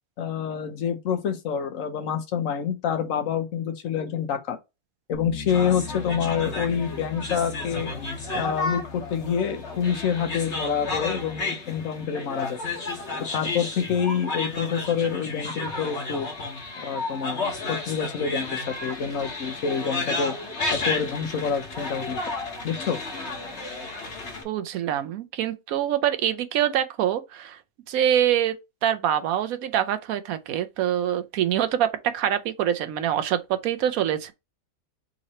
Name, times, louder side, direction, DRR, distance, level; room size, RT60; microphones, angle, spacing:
voice 1, 0.2-4.6 5.1-7.9 8.3-12.6 13.3-16.3 16.8-20.3 20.7-22.2 22.6-23.0, left 7 dB, 70° left, 1.2 m, -27 dB
Bass guitar, 5.1-11.4, left 3 dB, 25° left, 1.1 m, -41 dB
sound 1, 5.5-24.4, left 3 dB, 55° left, 1.5 m, -32 dB
voice 2, 24.4-27.6 27.9-28.6 28.8-34.3, right 10 dB, 90° right, 1.1 m, -25 dB
3.8 x 3.0 x 4.2 m
omnidirectional pair, 1.5 m